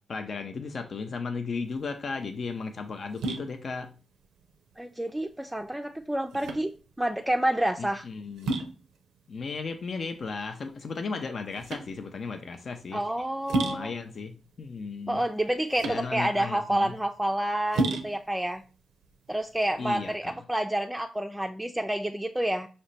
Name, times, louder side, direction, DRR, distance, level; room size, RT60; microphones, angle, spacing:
voice 1, 0.0-3.9 7.8-8.6 9.3-13.0 13.6-15.2 15.9-16.9 19.8-20.3, left 4 dB, 60° left, 6 dB, 0.4 m, -35 dB
sound 1, 1.6-20.2, right 2 dB, 85° right, 0.4 m, -36 dB
voice 2, 4.8-6.7 7.0-8.0 12.9-13.9 15.1-18.6 19.3-22.7, right 1 dB, 10° right, 4 dB, 0.3 m, -29 dB
5.0 x 2.2 x 3.9 m, 0.36 s
supercardioid pair, 45°, 0 cm